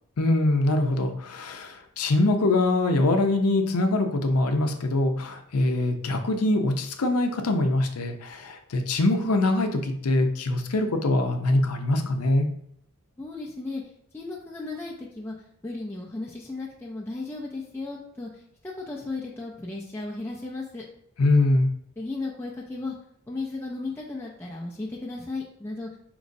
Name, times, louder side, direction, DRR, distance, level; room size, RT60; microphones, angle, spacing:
voice 1, 0.2-12.5 21.2-21.7, left 2 dB, 85° left, 6 dB, 0.6 m, -23 dB
voice 2, 13.2-13.8 14.1-15.3 15.6-18.3 18.8-20.8 22.0-22.9 23.3-25.9, left 3 dB, 10° left, -4 dB, 0.4 m, -35 dB
5.1 x 3.0 x 2.6 m, 0.69 s
head